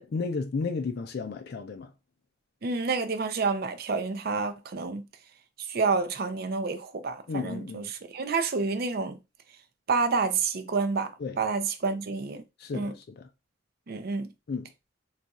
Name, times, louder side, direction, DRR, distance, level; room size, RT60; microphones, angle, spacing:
voice 1, 0.0-1.9 7.3-7.9 11.2-11.4 12.6-13.3 14.5-14.7, left 4 dB, 55° left, 0.4 m, -33 dB
voice 2, 2.6-5.0 5.7-7.8 8.1-9.2 9.9-11.1 11.4-12.4 12.7-12.9 13.9-14.3, right 4 dB, 50° right, 0.5 m, -28 dB
2.4 x 2.3 x 4.0 m
head